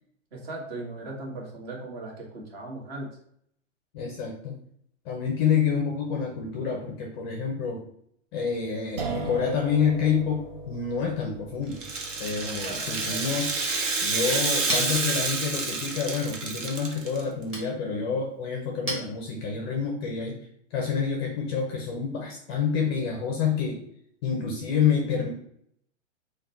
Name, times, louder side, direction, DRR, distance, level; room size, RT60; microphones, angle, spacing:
voice 1, 0.3-3.1 12.4-13.2, right 2 dB, 50° right, -1 dB, 1.4 m, -38 dB
voice 2, 3.9-4.6 5.0-7.8 8.3-11.8 12.2-13.5 14.0-20.4 20.7-23.8 24.2-25.3, left 6 dB, 20° left, 0 dB, 0.4 m, -28 dB
sound 1, 9.0-15.9, right 3 dB, 35° right, 0.5 m, -40 dB
Rattle (instrument), 11.7-17.2, right 3 dB, 70° right, 1.0 m, -29 dB
Chink clink, 14.1-19.8, right 1 dB, 15° right, 0.9 m, -39 dB
3.7 x 2.2 x 4.1 m, 0.68 s
hypercardioid pair, 135°, 38 cm